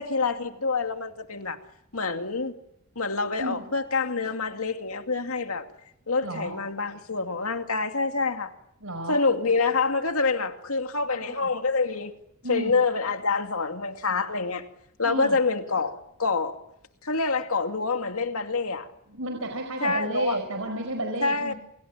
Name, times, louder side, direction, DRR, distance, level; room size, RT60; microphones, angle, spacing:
voice 1, 0.0-1.6 1.9-2.5 3.0-5.7 6.1-8.5 9.1-12.1 12.5-14.7 15.0-16.6 17.0-18.9 19.8-20.4 21.2-21.5, left 4 dB, 75° left, 2.4 m, -26 dB
voice 2, 6.2-6.5 8.8-9.2 11.1-11.5 12.4-12.7 15.0-15.4 19.1-21.5, right 1 dB, 70° right, 4.7 m, -32 dB
29.0 x 28.0 x 7.3 m
head